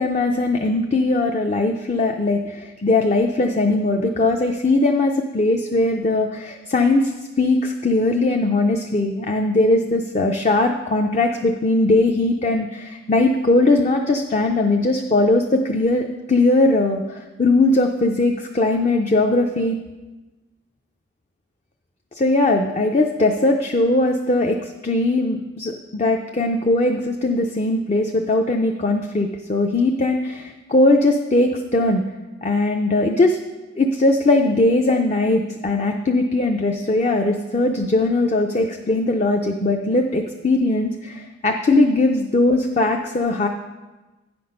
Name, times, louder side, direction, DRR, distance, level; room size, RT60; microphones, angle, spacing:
voice 1, 0.0-7.1 7.4-19.8 22.1-32.0 32.4-33.4 33.8-43.5, left 2 dB, 35° left, 3 dB, 0.4 m, -19 dB
9.4 x 6.0 x 5.3 m, 1.2 s
head